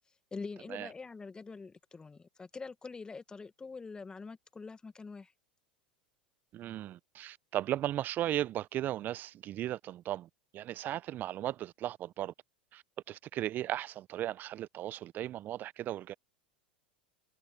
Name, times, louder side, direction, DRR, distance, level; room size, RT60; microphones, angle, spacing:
voice 1, 0.3-5.3, left 4 dB, 15° left, 1.5 m, -45 dB
voice 2, 6.5-12.3 12.7-12.8 13.1-16.1, right 13 dB, 40° right, 0.6 m, -36 dB
hypercardioid pair, 90°, 5 cm